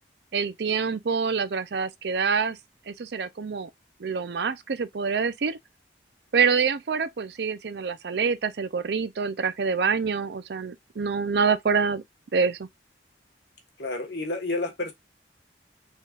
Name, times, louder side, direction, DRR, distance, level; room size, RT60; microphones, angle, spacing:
voice 1, 0.3-2.6 2.9-3.7 4.0-5.6 6.3-12.0 12.3-12.7, right 5 dB, 65° right, 0.5 m, -26 dB
voice 2, 13.8-14.9, left 2 dB, 70° left, 1.3 m, -30 dB
4.5 x 3.6 x 2.3 m
head